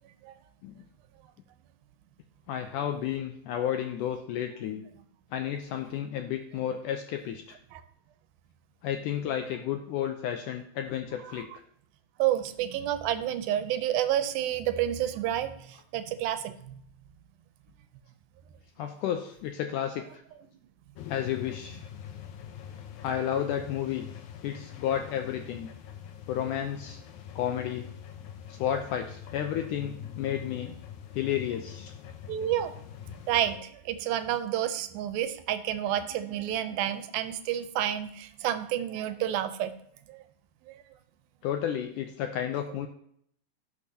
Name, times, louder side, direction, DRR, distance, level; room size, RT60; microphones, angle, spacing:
voice 1, 2.5-4.9 5.3-7.6 8.8-11.5 18.8-20.2 21.1-21.9 23.0-24.1 24.4-25.7 26.3-27.0 27.4-27.9 28.5-30.7 31.1-31.9 41.4-42.9, left 10 dB, 90° left, 6 dB, 1.8 m, -32 dB
voice 2, 12.2-15.5 15.9-16.5 32.3-32.7 33.3-39.7 40.1-40.2, right 11 dB, 90° right, 11 dB, 2.4 m, -29 dB
sound 1, 21.0-33.6, left 9 dB, 70° left, 1.9 m, -44 dB
16.5 x 6.6 x 2.8 m, 0.67 s
omnidirectional pair, 4.2 m